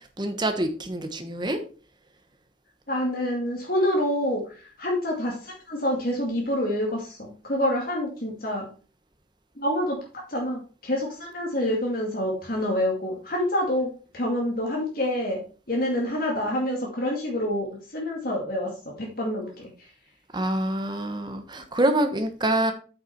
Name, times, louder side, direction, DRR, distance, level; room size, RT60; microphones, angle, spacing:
voice 1, 0.2-1.6 20.3-22.7, right 1 dB, 25° right, 7 dB, 1.2 m, -26 dB
voice 2, 2.9-8.7 9.6-13.9 14.1-15.4 15.7-18.7 19.0-19.9, left 1 dB, 50° left, -1 dB, 2.3 m, -27 dB
8.3 x 6.7 x 4.5 m, 0.37 s
head